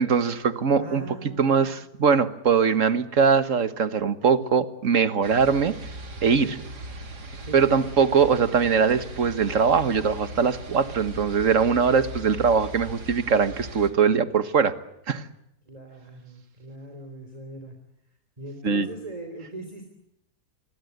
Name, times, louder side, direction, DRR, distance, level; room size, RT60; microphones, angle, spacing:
voice 1, 0.0-1.0 1.4-5.7 6.2-6.6 7.5-14.7 15.1-15.3 18.6-18.9, right 6 dB, 55° right, 12 dB, 1.7 m, -21 dB
voice 2, 0.7-1.7 4.3-4.6 6.4-6.7 7.4-7.7 15.6-17.8 18.4-19.9, right 2 dB, 20° right, 5 dB, 3.3 m, -40 dB
sound 1, 5.2-13.9, right 1 dB, 85° right, 3.3 m, -39 dB
27.5 x 22.5 x 8.1 m, 0.81 s
omnidirectional pair, 1.7 m